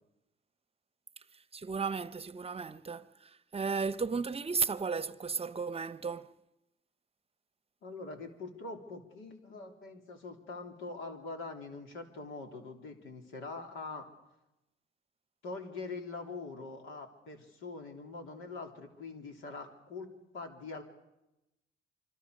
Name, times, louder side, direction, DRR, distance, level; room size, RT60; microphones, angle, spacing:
voice 1, 1.5-6.3, right 5 dB, 30° right, 0.8 m, -34 dB
voice 2, 7.8-14.1 15.4-20.8, left 3 dB, 90° left, 3.5 m, -43 dB
25.5 x 25.5 x 6.6 m
cardioid pair, 90°, 20 cm